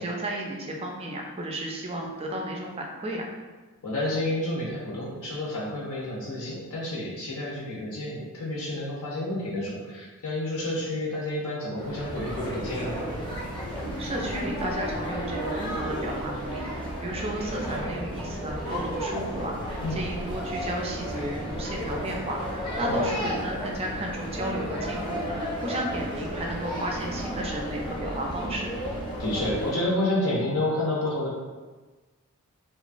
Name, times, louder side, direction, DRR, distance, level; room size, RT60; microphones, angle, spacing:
voice 1, 0.0-3.3 14.0-28.8, right 1 dB, 25° right, 0 dB, 0.4 m, -33 dB
voice 2, 3.8-13.0 19.8-20.0 22.8-23.1 29.2-31.3, left 1 dB, 70° left, -4 dB, 0.6 m, -29 dB
sound 1, 11.8-29.7, equal, 20° left, 0.7 m, -33 dB
2.9 x 2.2 x 2.4 m, 1.3 s
head